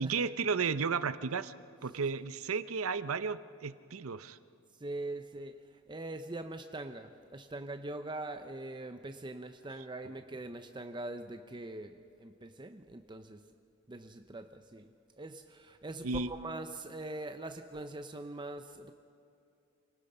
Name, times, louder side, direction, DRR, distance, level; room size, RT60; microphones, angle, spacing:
voice 1, 0.0-1.5 1.8-4.4 16.0-16.3, right 5 dB, 85° right, 14 dB, 0.7 m, -33 dB
voice 2, 4.8-13.4 13.9-18.9, right 2 dB, 20° right, 8 dB, 0.6 m, -43 dB
28.0 x 19.0 x 5.5 m, 2.7 s
head